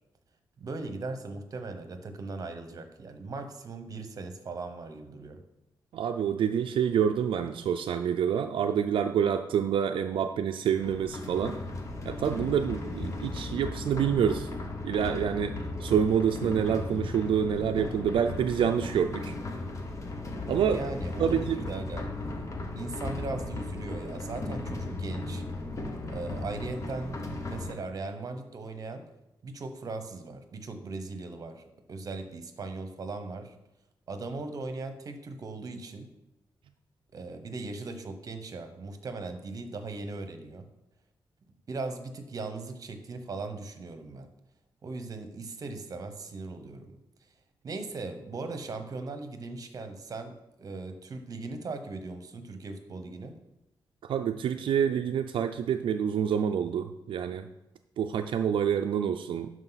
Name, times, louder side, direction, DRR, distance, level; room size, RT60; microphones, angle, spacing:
voice 1, 0.6-5.4 20.7-22.1 22.7-25.4 26.1-29.0 29.4-31.6 31.9-33.5 34.1-36.1 37.1-40.7 41.7-44.3 44.8-47.0 47.6-53.4, right 3 dB, 45° right, 7 dB, 0.9 m, -38 dB
voice 2, 5.9-11.6 12.0-14.5 14.8-15.5 15.8-19.4 20.5-20.8 21.2-21.6 54.0-57.5 58.0-59.5, right 8 dB, 75° right, 6 dB, 0.4 m, -27 dB
sound 1, 10.7-27.7, left 2 dB, 35° left, 1.0 m, -36 dB
11.5 x 4.8 x 4.0 m, 0.92 s
wide cardioid pair, 150°, 9 cm